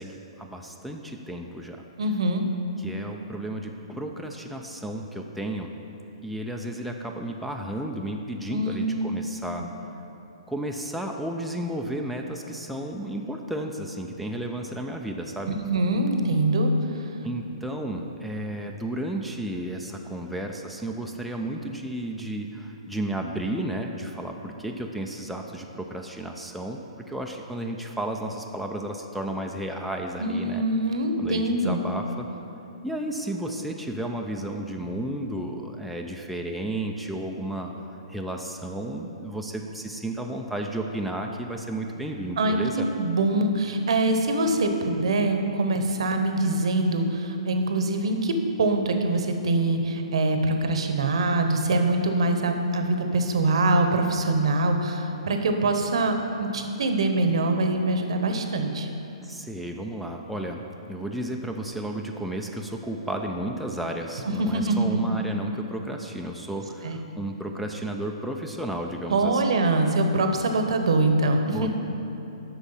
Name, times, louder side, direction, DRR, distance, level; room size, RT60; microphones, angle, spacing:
voice 1, 0.0-1.8 2.8-5.7 6.2-9.7 10.5-15.6 17.2-26.8 27.1-30.6 31.2-32.3 32.8-37.7 38.1-42.9 59.2-69.4 71.5-71.7, right 1 dB, ahead, 0 dB, 0.4 m, -33 dB
voice 2, 2.0-2.4 8.5-9.0 15.5-16.7 30.2-31.8 42.4-58.9 64.2-65.1 66.8-67.0 69.1-71.7, right 2 dB, 65° right, 5 dB, 0.9 m, -24 dB
8.1 x 6.1 x 5.5 m, 3.0 s
figure-of-eight pair, 125°, 3 cm